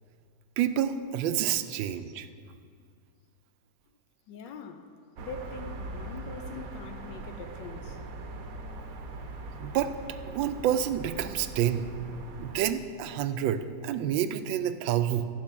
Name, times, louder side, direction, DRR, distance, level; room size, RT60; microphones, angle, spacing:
voice 1, 0.6-2.3 9.6-9.9 10.3-11.9 12.4-15.2, right 10 dB, 90° right, 11 dB, 1.3 m, -28 dB
voice 2, 4.3-4.9 5.2-8.0, left 4 dB, 75° left, 8 dB, 1.3 m, -42 dB
sound 1, 5.2-12.6, right 3 dB, 60° right, 1.0 m, -41 dB
10.5 x 5.3 x 7.4 m, 2.2 s
omnidirectional pair, 2.0 m